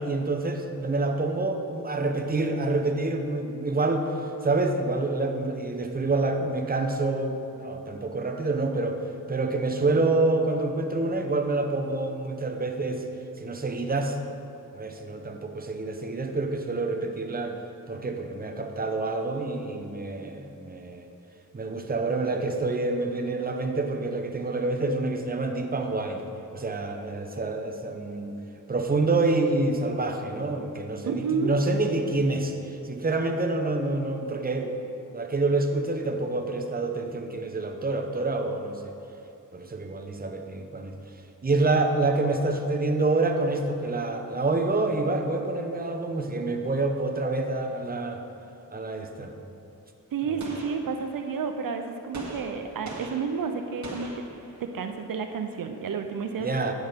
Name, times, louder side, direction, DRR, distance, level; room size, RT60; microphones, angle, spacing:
voice 1, 0.0-4.1 4.4-9.0 9.3-13.0 13.4-14.4 14.7-17.5 17.9-21.1 21.5-26.2 26.5-28.4 28.7-34.7 35.1-38.9 39.5-40.9 41.4-48.2 48.7-49.3 56.4-56.7, right 2 dB, 25° right, 4 dB, 0.9 m, -27 dB
voice 2, 31.1-31.6 50.1-54.2 54.6-56.7, right 5 dB, 75° right, 6 dB, 0.6 m, -31 dB
Gunshot gunfire, 50.4-51.5 52.1-54.9, right 2 dB, 55° right, 1.6 m, -42 dB
9.3 x 6.3 x 5.1 m, 2.6 s
cardioid pair, 75°, 34 cm